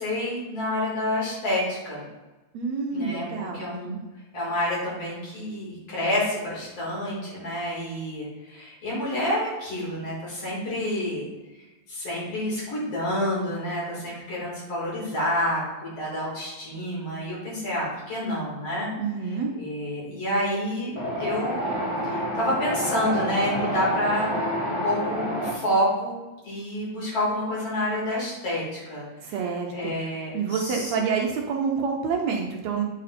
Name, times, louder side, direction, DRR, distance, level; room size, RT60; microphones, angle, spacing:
voice 1, 0.0-2.0 2.9-3.9 4.3-11.3 11.9-18.9 19.6-20.9 21.2-21.6 22.0-24.3 24.6-26.2 26.4-29.4 29.7-30.9, left 1 dB, 55° left, -7 dB, 3.6 m, -28 dB
voice 2, 2.5-4.0 19.0-19.5 29.2-29.9 30.3-32.8, right 5 dB, 75° right, 1 dB, 1.8 m, -28 dB
Wind, 20.9-25.5, equal, 15° left, 1.0 m, -28 dB
8.4 x 3.9 x 4.2 m, 1.1 s
omnidirectional pair, 3.4 m